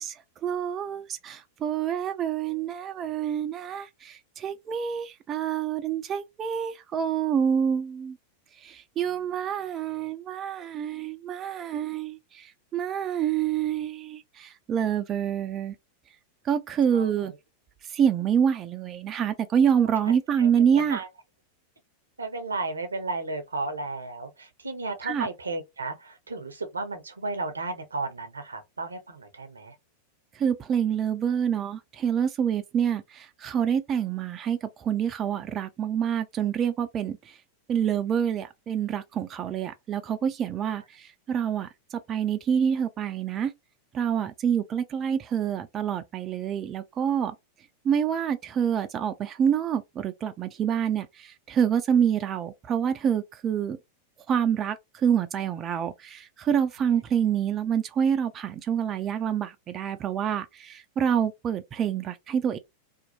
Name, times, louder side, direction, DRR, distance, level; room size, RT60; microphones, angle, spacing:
voice 1, 0.0-8.2 8.6-15.7 16.4-17.3 17.8-21.0 25.0-25.3 30.3-37.4 37.7-43.5 43.9-47.3 47.8-53.8 54.3-62.6, right 8 dB, 30° right, 0.3 m, -27 dB
voice 2, 16.9-17.3 20.4-21.1 22.2-29.7, right 3 dB, 75° right, 0.6 m, -34 dB
2.6 x 2.1 x 2.6 m
figure-of-eight pair, 90°, 0 cm